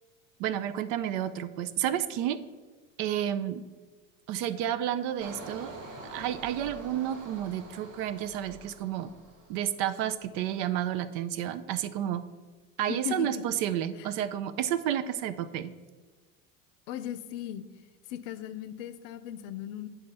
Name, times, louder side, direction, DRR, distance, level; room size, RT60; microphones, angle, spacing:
voice 1, 0.4-2.4 3.0-3.6 4.3-5.7 6.1-9.1 9.5-12.2 12.8-15.7, right 11 dB, 60° right, 12 dB, 0.6 m, -31 dB
Engine, 5.2-9.9 10.2-10.6, right 2 dB, 80° right, 1.4 m, -46 dB
voice 2, 12.9-13.4 14.0-14.1 16.9-17.6 18.1-19.9, left 11 dB, 75° left, 13 dB, 0.6 m, -37 dB
8.4 x 3.4 x 5.4 m, 1.4 s
hypercardioid pair, 80°, 39 cm